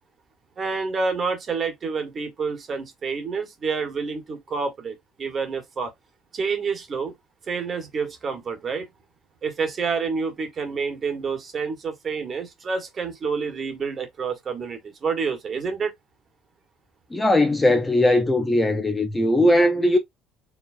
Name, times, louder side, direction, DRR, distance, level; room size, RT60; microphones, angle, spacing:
voice 1, 0.6-5.9 6.3-7.1 7.5-8.9 9.4-15.9, right 5 dB, 35° right, 1.5 m, -28 dB
voice 2, 17.1-20.0, left 1 dB, 10° left, 0.6 m, -19 dB
4.9 x 3.1 x 2.6 m
cardioid pair, 135°, 0 cm